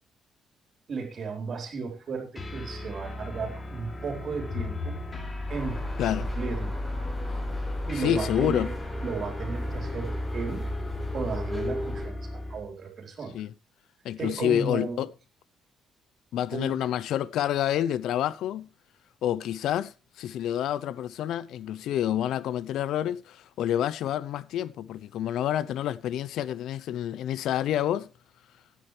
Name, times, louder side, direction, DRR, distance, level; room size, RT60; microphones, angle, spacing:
voice 1, 0.9-4.9 5.5-6.8 7.9-8.8 9.0-10.6 11.1-13.3 14.2-15.0 16.5-16.8, right 4 dB, 50° right, 4.1 m, -35 dB
sound 1, 2.4-12.7, left 1 dB, 30° left, 3.1 m, -35 dB
sound 2, 4.0-7.1, left 4 dB, 50° left, 5.5 m, -40 dB
sound 3, 5.5-12.1, left 1 dB, 15° left, 7.1 m, -38 dB
voice 2, 8.0-8.7 13.3-13.5 14.0-15.1 16.3-18.7 19.2-28.1, left 11 dB, 80° left, 0.6 m, -28 dB
16.5 x 9.8 x 3.3 m
cardioid pair, 90°, 0 cm